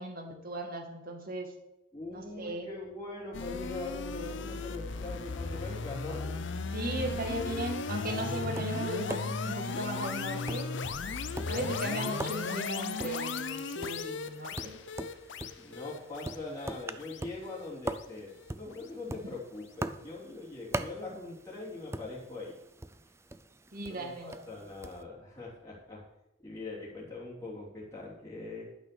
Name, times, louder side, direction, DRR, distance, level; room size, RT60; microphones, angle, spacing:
voice 1, 0.0-1.5 2.1-2.7 6.7-10.7 11.5-14.8 19.1-19.2 23.7-24.4, right 1 dB, 40° right, 4 dB, 1.9 m, -37 dB
voice 2, 1.9-6.3 15.6-22.6 23.9-26.0 26.4-28.7, left 2 dB, 15° left, -8 dB, 3.0 m, -42 dB
sound 1, 3.3-18.5, left 4 dB, 55° left, 0.6 m, -36 dB
Tap, 8.3-25.0, right 2 dB, 15° right, 0.4 m, -43 dB
11.5 x 6.4 x 6.8 m, 0.95 s
head